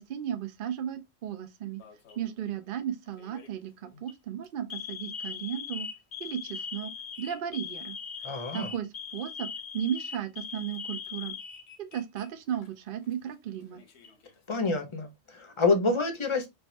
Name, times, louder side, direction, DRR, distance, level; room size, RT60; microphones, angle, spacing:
voice 1, 0.0-1.8 2.2-5.9 6.2-6.9 7.2-8.0 8.5-8.9 9.1-9.5 9.7-11.3 11.8-13.8, right 9 dB, 60° right, 0.6 m, -35 dB
Alarm, 1.8-2.3 3.2-3.5 3.9-4.1 4.7-12.2 12.5-12.7 13.6-14.3, left 6 dB, 70° left, 1.0 m, -40 dB
voice 2, 8.2-8.7 14.5-16.5, left 3 dB, 35° left, 0.6 m, -27 dB
4.5 x 2.2 x 2.6 m
omnidirectional pair, 1.2 m